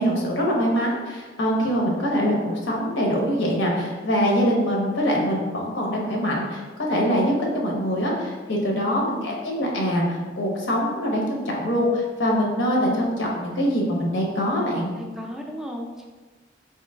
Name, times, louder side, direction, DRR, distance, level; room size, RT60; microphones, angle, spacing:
voice 1, 0.0-6.6 6.9-14.9, equal, 85° left, -2 dB, 0.9 m, -23 dB
voice 2, 9.0-9.4 15.0-16.1, equal, ahead, 0 dB, 0.3 m, -36 dB
3.1 x 2.9 x 3.4 m, 1.3 s
head